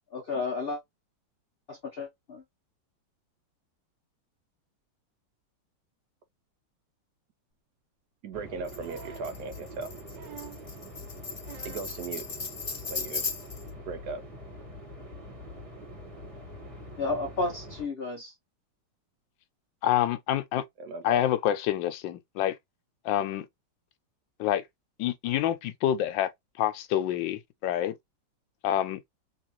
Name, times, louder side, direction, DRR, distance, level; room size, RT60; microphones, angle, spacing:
voice 1, 0.1-0.8 1.7-2.4 17.0-18.3, left 3 dB, 60° left, 0.6 m, -32 dB
voice 2, 8.2-9.9 11.6-12.3 12.8-13.2 13.9-14.2 20.8-21.2, right 4 dB, 70° right, 1.1 m, -37 dB
sound 1, 8.3-17.9, left 1 dB, 20° right, 1.2 m, -44 dB
Tambourine, 8.7-13.7, left 4 dB, 35° left, 1.1 m, -37 dB
sound 2, 8.8-9.3 10.1-10.7 11.4-12.0 13.2-13.3, right 8 dB, 90° right, 1.4 m, -47 dB
voice 3, 19.8-20.6 21.0-22.6 23.0-23.5 24.4-24.6 25.0-26.3 26.6-27.9 28.6-29.0, left 11 dB, 85° left, 1.3 m, -27 dB
3.7 x 2.9 x 3.0 m
omnidirectional pair, 2.0 m